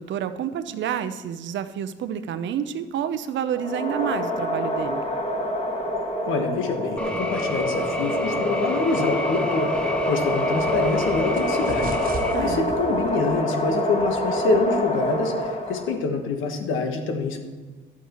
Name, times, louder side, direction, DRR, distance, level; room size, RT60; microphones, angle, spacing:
voice 1, 0.0-5.1 12.3-12.7, right 9 dB, 70° right, 11 dB, 0.6 m, -29 dB
sound 1, 3.5-16.0, equal, 35° left, 1.5 m, -27 dB
voice 2, 6.3-12.0 12.4-17.4, left 4 dB, 85° left, 5 dB, 1.3 m, -26 dB
sound 2, 7.0-12.3, left 1 dB, 5° left, 0.9 m, -28 dB
sound 3, 9.7-15.9, right 2 dB, 45° right, 1.2 m, -39 dB
11.5 x 8.4 x 3.0 m, 1.4 s
cardioid pair, 90°, 20 cm